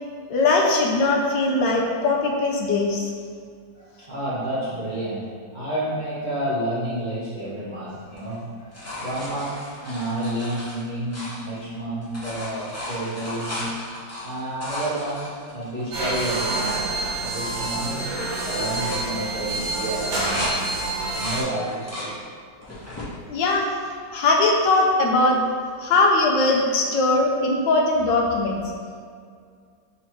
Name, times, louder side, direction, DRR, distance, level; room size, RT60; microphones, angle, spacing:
voice 1, 0.3-3.1 23.3-23.7 24.1-25.4 25.8-28.6, left 2 dB, 75° left, 0 dB, 1.2 m, -20 dB
voice 2, 3.7-13.7 14.2-16.9 17.2-20.6 21.1-22.1, right 1 dB, 50° right, -11 dB, 0.5 m, -30 dB
sound 1, 8.1-11.8 12.0-16.4 16.9-17.0 17.3-17.7 18.0-18.3 18.7-20.5 20.9-22.1 22.6-23.1 23.7-24.5 26.1-26.2, left 1 dB, 15° left, 0.5 m, -35 dB
sound 2, 15.9-21.4, right 2 dB, 90° right, 1.8 m, -27 dB
4.2 x 2.9 x 4.3 m, 2.2 s
omnidirectional pair, 2.1 m